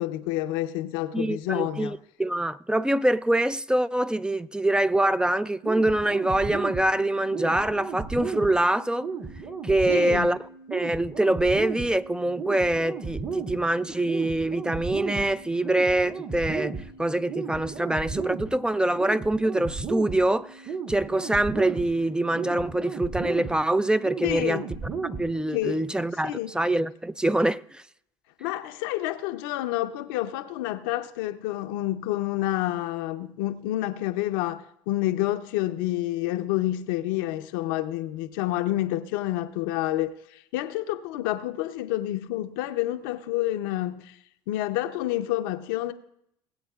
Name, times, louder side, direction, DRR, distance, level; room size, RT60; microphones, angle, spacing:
voice 1, 0.0-2.0 9.9-10.3 24.2-24.6 25.5-25.8 26.2-26.5 28.4-44.1 44.5-45.9, left 15 dB, 85° left, 0.7 m, -28 dB
voice 2, 1.1-9.1 9.6-10.4 10.7-16.7 17.0-20.6 20.9-24.6 25.2-27.8, right 1 dB, 10° right, 0.4 m, -25 dB
sound 1, 5.6-25.6, right 5 dB, 50° right, 2.1 m, -35 dB
21.0 x 8.1 x 2.4 m
supercardioid pair, 80°, 11 cm